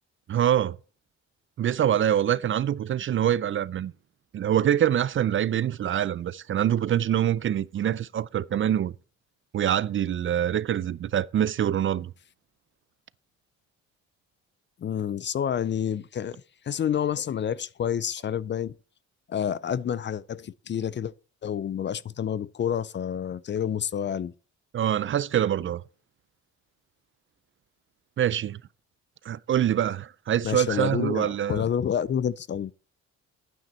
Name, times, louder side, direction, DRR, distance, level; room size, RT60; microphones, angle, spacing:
voice 1, 0.3-0.8 1.6-3.9 4.3-8.9 9.5-12.1 24.7-25.8 28.2-28.6 29.2-31.6, right 10 dB, 45° right, 0.4 m, -25 dB
voice 2, 14.8-18.7 19.3-21.1 21.4-24.3 30.4-32.7, left 8 dB, 40° left, 0.4 m, -29 dB
9.4 x 9.0 x 4.3 m
cardioid pair, 90°, 30 cm